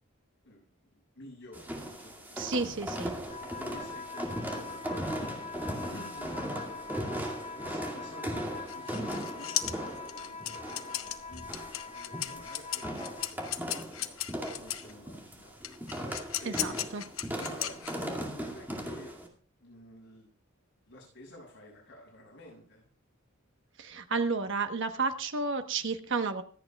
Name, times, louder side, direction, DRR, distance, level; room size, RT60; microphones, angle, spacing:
voice 1, 1.1-2.5 3.4-5.3 5.8-7.0 7.5-9.5 10.1-14.2 14.6-15.6 16.4-16.9 17.4-19.1 19.6-20.3 20.9-22.9, left 1 dB, 55° left, -2 dB, 7.6 m, -51 dB
sound 1, 1.5-19.3, equal, 10° right, 2.2 m, -38 dB
voice 2, 2.4-3.1 16.4-17.0 23.8-26.4, right 4 dB, 65° right, 8 dB, 1.1 m, -31 dB
sound 2, 3.2-13.4, left 4 dB, 35° left, 1.0 m, -43 dB
sound 3, 8.7-14.9 15.6-18.2, left 12 dB, 85° left, 0.9 m, -36 dB
25.0 x 8.7 x 2.4 m, 0.43 s
head